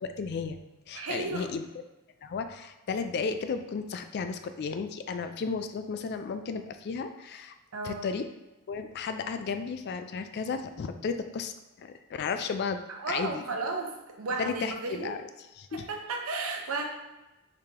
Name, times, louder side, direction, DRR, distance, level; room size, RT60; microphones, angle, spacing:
voice 1, 0.0-0.6 0.9-1.7 2.2-7.5 7.8-8.3 8.7-12.8 13.1-13.4 14.4-15.2 15.6-15.9, left 5 dB, 50° left, 8 dB, 0.3 m, -34 dB
voice 2, 0.9-1.5 7.7-8.1 12.9-15.1 15.7-16.8, right 3 dB, 75° right, 2 dB, 0.7 m, -34 dB
4.7 x 2.9 x 3.6 m, 1.0 s
head